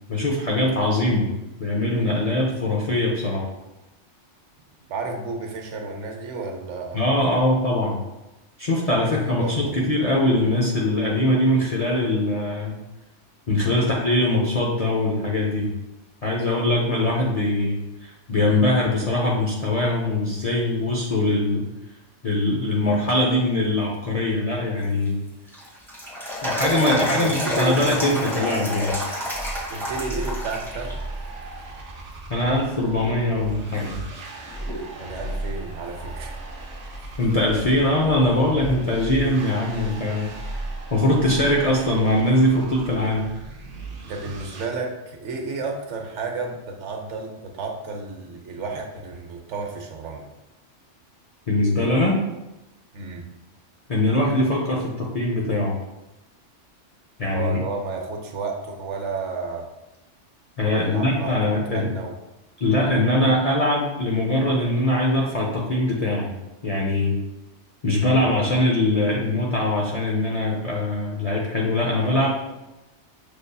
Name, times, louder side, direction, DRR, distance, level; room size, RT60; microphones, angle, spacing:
voice 1, 0.1-1.3 1.6-3.4 6.9-8.0 8.6-12.8 13.5-15.7 16.2-21.6 22.2-25.2 26.4-29.0 32.3-34.0 37.2-40.6 40.9-43.3 51.5-52.1 53.9-55.8 57.2-57.6 60.6-61.9 62.6-66.3 66.6-67.2 67.8-72.3, left 1 dB, 50° left, -3 dB, 0.5 m, -22 dB
voice 2, 4.9-7.0 8.9-9.8 26.9-27.9 29.7-31.0 35.0-36.3 44.1-50.3 52.9-53.3 57.3-59.7 60.6-62.2 68.0-68.3, right 4 dB, 75° right, 3 dB, 1.0 m, -32 dB
sound 1, 24.8-30.9 31.3-31.4 32.2-32.6 33.2-33.3 33.7-35.0 35.3-35.4 38.7-38.8 41.8-41.9, left 1 dB, ahead, 1.2 m, -30 dB
sound 2, 28.8-44.6, right 2 dB, 60° right, 0.4 m, -36 dB
6.5 x 2.6 x 2.2 m, 0.98 s
omnidirectional pair, 1.3 m